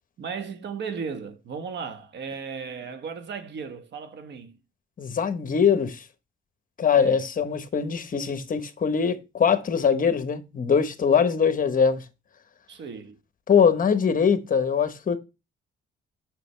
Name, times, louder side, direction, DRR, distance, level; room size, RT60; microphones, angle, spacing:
voice 1, 0.2-4.6 6.9-7.2 12.7-13.2, right 6 dB, 60° right, 1.2 m, -36 dB
voice 2, 5.0-6.0 6.8-12.0 13.5-15.2, left 6 dB, 45° left, 1.1 m, -22 dB
6.8 x 6.1 x 3.3 m
cardioid pair, 90°, 20 cm